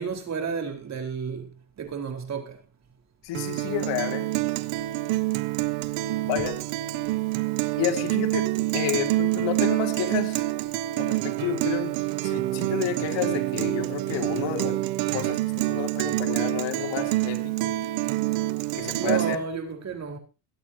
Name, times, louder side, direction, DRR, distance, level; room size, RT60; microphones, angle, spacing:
voice 1, 0.0-1.5 1.8-2.6 19.0-20.2, right 6 dB, 35° right, 4.4 m, -31 dB
voice 2, 3.2-4.3 6.3-6.6 7.8-8.5 8.7-10.5 11.0-12.0 12.2-14.8 15.1-17.8 18.7-19.4, left 10 dB, 70° left, 3.0 m, -30 dB
Guitar, 3.3-19.4, right 18 dB, 85° right, 1.3 m, -27 dB
23.0 x 8.8 x 2.8 m
cardioid pair, 130°, 46 cm